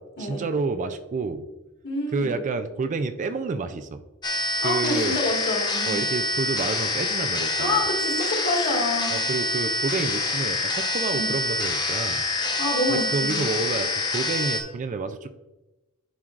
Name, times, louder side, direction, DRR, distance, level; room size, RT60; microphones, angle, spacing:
voice 1, 0.2-1.5 2.1-4.0 4.6-5.2 5.9-7.8 9.1-12.2 12.9-15.3, right 4 dB, 35° right, 9 dB, 0.3 m, -29 dB
voice 2, 1.8-2.4 4.6-6.0 7.6-9.2 11.1-11.3 12.6-13.5, left 2 dB, 50° left, -1 dB, 1.8 m, -27 dB
sound 1, 4.2-14.6, left 2 dB, 20° left, 0.7 m, -26 dB
11.0 x 4.5 x 2.5 m, 1.0 s
head